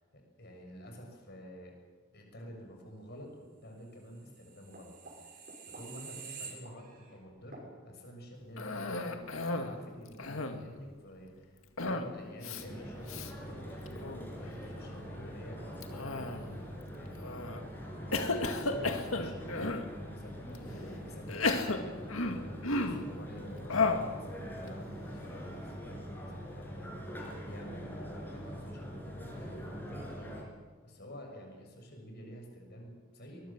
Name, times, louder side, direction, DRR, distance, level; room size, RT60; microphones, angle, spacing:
voice 1, 0.1-1.7 2.1-4.9 5.3-5.4 5.7-17.5 18.5-30.5 30.8-33.5, equal, 50° left, 2 dB, 6.6 m, -49 dB
sound 1, 4.2-7.1 7.5-7.7, right 5 dB, 45° right, 6.2 m, -48 dB
Cough, 8.6-9.8 10.1-10.7 11.8-12.1 12.4-12.6 13.1-13.3 13.9-14.3 15.8-16.6 17.2-17.6 18.1-19.9 20.5-20.6 21.3-23.1 23.7-24.1, left 3 dB, 90° left, 2.1 m, -33 dB
sound 2, 12.6-30.4, equal, 10° left, 5.2 m, -43 dB
23.0 x 21.0 x 7.4 m, 1.4 s
head